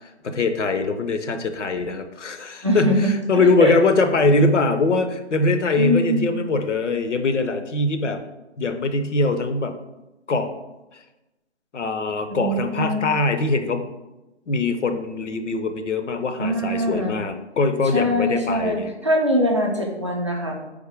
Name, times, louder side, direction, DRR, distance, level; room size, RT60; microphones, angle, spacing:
voice 1, 0.2-8.2 8.6-9.7 10.3-10.5 11.7-13.9 14.5-18.9, left 3 dB, 85° left, 8 dB, 0.6 m, -22 dB
voice 2, 2.6-3.7 5.8-6.4 12.3-13.0 16.4-17.2 17.9-20.6, equal, 25° right, -1 dB, 0.4 m, -22 dB
3.8 x 3.6 x 3.4 m, 1.0 s
figure-of-eight pair, 155°, 35 cm